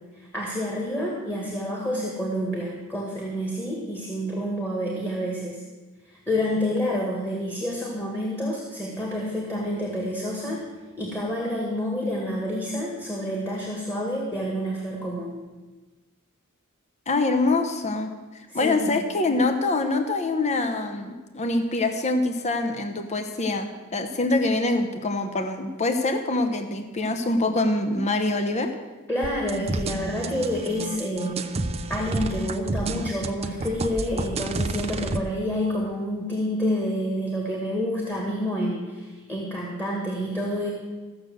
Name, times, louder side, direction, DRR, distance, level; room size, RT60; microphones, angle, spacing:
voice 1, 0.1-5.6 6.1-10.6 11.0-15.4 18.5-19.0 29.1-31.5 31.9-40.7, equal, 10° left, -2 dB, 1.9 m, -28 dB
voice 2, 17.1-18.1 18.5-28.7, left 2 dB, 30° left, 5 dB, 0.9 m, -24 dB
sound 1, 29.2-35.2, right 2 dB, 30° right, 0.6 m, -30 dB
14.5 x 6.6 x 7.7 m, 1.3 s
head